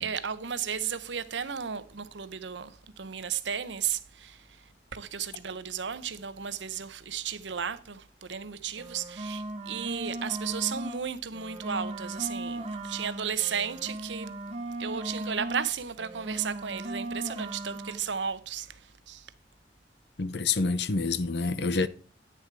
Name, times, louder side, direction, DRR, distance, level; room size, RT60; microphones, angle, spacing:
voice 1, 0.0-4.4 4.9-14.4 14.8-19.3, right 7 dB, 85° right, 0.9 m, -34 dB
sound 1, 8.7-11.0 11.3-15.7 16.0-18.0, right 1 dB, 35° right, 1.3 m, -37 dB
voice 2, 20.2-21.9, left 4 dB, 65° left, 0.8 m, -27 dB
9.8 x 6.8 x 4.6 m
head